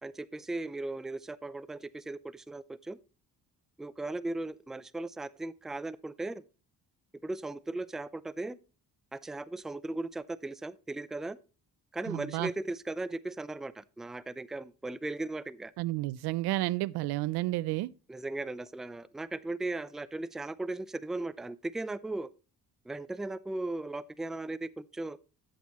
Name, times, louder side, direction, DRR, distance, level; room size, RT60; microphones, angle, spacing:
voice 1, 0.0-3.0 3.8-6.4 7.2-8.6 9.1-11.4 11.9-15.7 18.1-22.3 22.9-25.2, right 2 dB, ahead, 0.4 m, -37 dB
voice 2, 12.1-12.5 15.8-17.9, right 17 dB, 85° right, 0.5 m, -31 dB
14.0 x 6.3 x 3.0 m
cardioid pair, 80°, 38 cm